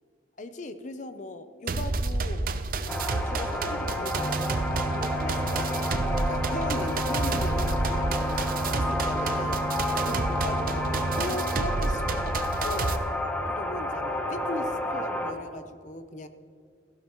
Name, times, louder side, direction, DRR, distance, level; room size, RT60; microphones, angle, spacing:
voice 1, 0.4-2.5 2.8-4.3 4.8-8.4 8.7-9.6 10.1-13.0 13.5-16.3, left 2 dB, 45° left, 10 dB, 0.7 m, -38 dB
sound 1, 1.7-13.0, right 3 dB, 50° right, 0.6 m, -30 dB
sound 2, 2.9-15.3, left 1 dB, 10° left, 1.0 m, -31 dB
sound 3, 4.1-12.2, right 1 dB, 25° right, 1.2 m, -35 dB
15.0 x 12.0 x 3.1 m, 2.2 s
head